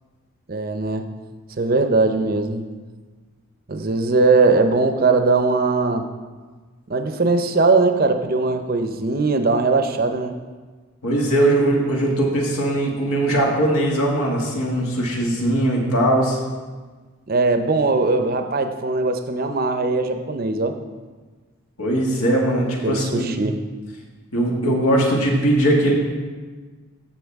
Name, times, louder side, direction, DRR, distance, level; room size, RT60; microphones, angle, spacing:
voice 1, 0.5-1.1 1.6-2.6 3.7-6.1 6.9-10.3 17.3-20.7 22.8-23.6, right 3 dB, 45° right, 7 dB, 0.6 m, -20 dB
voice 2, 11.0-16.4 21.8-23.3 24.3-25.9, right 1 dB, 85° left, -1 dB, 1.9 m, -20 dB
14.5 x 5.9 x 3.5 m, 1.4 s
head